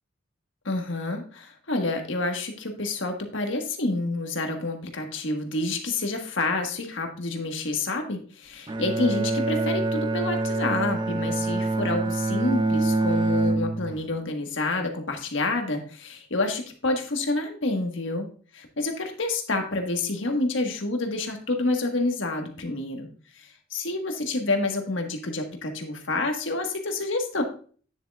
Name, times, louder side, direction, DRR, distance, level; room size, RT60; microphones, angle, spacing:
voice 1, 0.6-18.3 18.5-23.1 23.4-27.4, left 2 dB, 65° left, 4 dB, 1.5 m, -28 dB
Bowed string instrument, 8.7-14.1, right 2 dB, 25° right, 0.5 m, -25 dB
9.9 x 7.3 x 2.4 m, 0.42 s
head